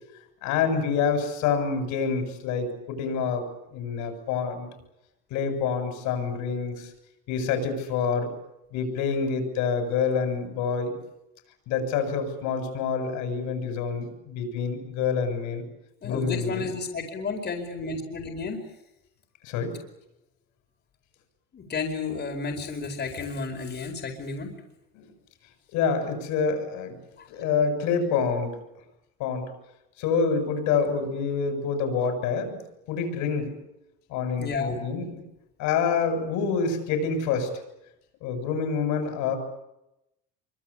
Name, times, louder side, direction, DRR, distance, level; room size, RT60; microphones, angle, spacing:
voice 1, 0.4-4.7 5.3-6.9 7.3-8.3 8.7-11.0 11.7-15.6 16.0-16.7 19.4-19.8 24.9-25.1 25.7-27.0 27.3-28.6 29.2-29.5 30.0-32.6 32.9-33.6 34.1-35.1 35.6-37.6 38.2-39.4, left 5 dB, 70° left, 7 dB, 7.4 m, -27 dB
voice 2, 16.0-18.7 21.5-24.5 27.2-27.3 34.4-34.8, left 4 dB, 35° left, 2 dB, 4.8 m, -32 dB
25.5 x 24.5 x 8.6 m, 0.89 s
supercardioid pair, 105°, 30 cm